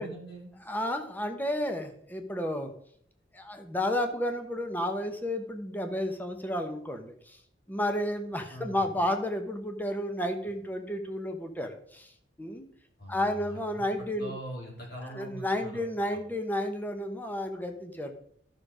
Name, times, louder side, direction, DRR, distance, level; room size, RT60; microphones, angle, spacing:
voice 1, 0.0-0.5 8.5-8.9 13.0-15.8 16.1-16.2, equal, 55° left, -2 dB, 4.3 m, -43 dB
voice 2, 0.7-2.7 3.3-7.4 7.7-12.1 12.4-12.6 13.1-14.3 15.1-18.1, left 1 dB, 10° left, 5 dB, 1.2 m, -32 dB
12.5 x 6.5 x 5.0 m, 0.63 s
head